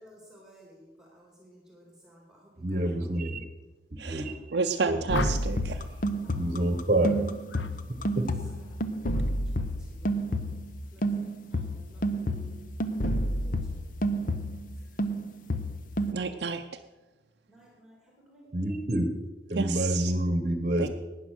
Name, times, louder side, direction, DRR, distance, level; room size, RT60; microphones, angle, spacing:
voice 1, 0.0-3.3 4.0-4.7 6.2-6.9 7.6-7.7 7.9-8.9 9.1-10.4 10.9-12.6 13.0-13.7 14.6-14.7 17.5-18.8, equal, 5° right, -1 dB, 2.3 m, -56 dB
voice 2, 2.6-3.4 4.1-4.3 4.9-5.3 6.3-7.3 18.5-19.1 19.5-20.9, right 1 dB, 40° right, 9 dB, 1.1 m, -27 dB
voice 3, 4.0-5.8 16.0-16.6 19.5-20.1 20.8-20.9, right 4 dB, 70° right, 5 dB, 0.5 m, -30 dB
sound 1, 5.1-5.7 7.5-7.8 8.1-8.5, left 3 dB, 90° left, 0.7 m, -35 dB
sound 2, 5.1-10.8 11.0-14.7 15.0-16.1, right 1 dB, 50° left, 0.8 m, -30 dB
12.0 x 9.3 x 6.3 m, 1.2 s
head